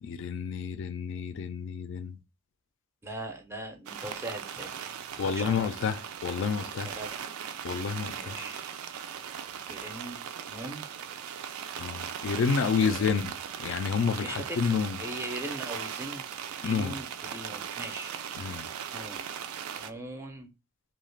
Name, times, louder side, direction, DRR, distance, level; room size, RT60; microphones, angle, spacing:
voice 1, 0.0-2.2 5.2-6.9 7.6-8.4 11.8-13.3 13.6-15.0 16.6-17.0 18.4-18.7, left 6 dB, 60° left, 0.3 m, -29 dB
voice 2, 3.0-4.8 5.2-5.7 6.9-7.2 8.1-8.6 9.7-10.9 12.7-13.1 14.2-16.3 16.6-18.1 18.5-19.2 19.8-20.5, right 1 dB, 10° right, 0.4 m, -40 dB
sound 1, 3.9-19.9, right 8 dB, 75° right, 0.3 m, -39 dB
2.4 x 2.2 x 3.1 m
head